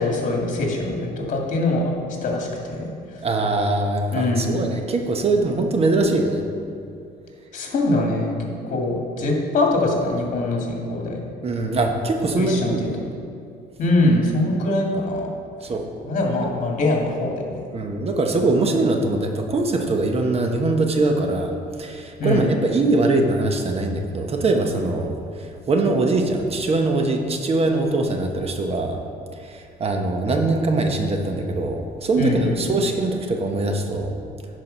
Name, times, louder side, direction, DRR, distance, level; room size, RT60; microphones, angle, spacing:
voice 1, 0.0-1.9 2.2-3.2 4.1-4.6 7.5-11.2 12.4-12.9 13.8-15.3 16.0-17.6 22.2-22.5 32.2-32.8, left 2 dB, 50° left, 0 dB, 2.1 m, -23 dB
voice 2, 3.2-6.5 11.4-12.9 15.6-15.8 16.4-16.5 17.7-21.5 21.8-29.0 29.3-34.2, right 2 dB, 35° right, 3 dB, 1.0 m, -22 dB
10.5 x 4.7 x 5.5 m, 2.5 s
cardioid pair, 110°, 17 cm